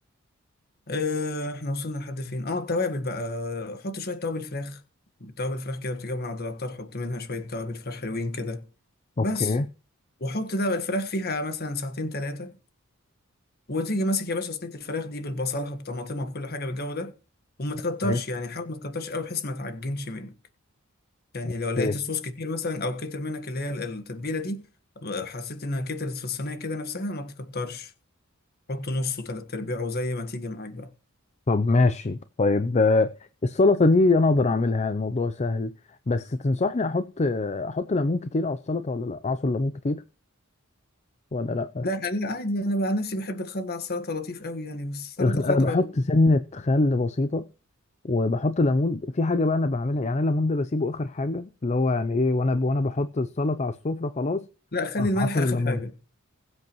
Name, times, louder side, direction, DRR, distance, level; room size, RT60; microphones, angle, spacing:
voice 1, 0.9-4.8 5.2-8.6 9.2-9.5 10.2-12.6 13.7-17.1 17.6-20.3 21.3-24.6 24.9-27.9 28.7-30.9 41.8-45.8 54.7-55.9, left 2 dB, 50° left, 1.5 m, -30 dB
voice 2, 9.2-9.7 18.0-18.2 21.4-21.9 31.5-33.1 33.4-35.7 36.1-40.0 41.3-41.8 45.2-47.5 48.0-54.4 55.0-55.8, left 2 dB, 35° left, 0.5 m, -24 dB
21.5 x 8.0 x 3.1 m
head